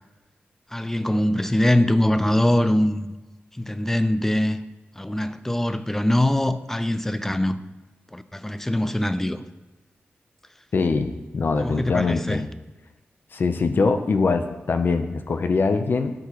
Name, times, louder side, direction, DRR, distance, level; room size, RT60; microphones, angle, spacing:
voice 1, 0.7-3.1 3.6-4.6 5.0-7.6 8.1-9.4 11.6-12.4, left 1 dB, 10° left, 12 dB, 0.4 m, -22 dB
voice 2, 10.7-12.5 13.3-16.1, left 4 dB, 55° left, 8 dB, 0.6 m, -23 dB
11.5 x 4.8 x 3.0 m, 1.2 s
wide cardioid pair, 95°, 4 cm